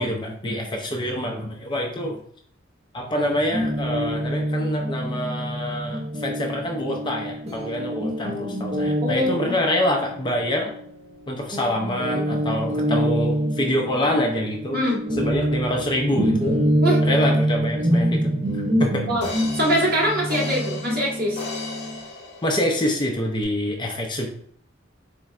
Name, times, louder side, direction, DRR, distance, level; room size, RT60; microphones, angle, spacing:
voice 1, 0.0-2.2 2.9-10.7 11.3-14.8 15.2-16.4 17.1-18.2 18.5-19.0 22.4-24.3, left 1 dB, 25° left, 1 dB, 0.5 m, -26 dB
Guitar, 3.5-11.2 11.5-22.0, equal, 30° right, 0.6 m, -26 dB
voice 2, 9.0-9.6 14.7-15.0 16.8-17.0 19.1-19.3 19.5-21.4, equal, 50° right, -5 dB, 1.5 m, -23 dB
sound 1, 18.5-18.6 19.2-23.0 23.4-23.5, left 3 dB, 60° left, 0.7 m, -36 dB
4.2 x 3.1 x 2.4 m, 0.63 s
head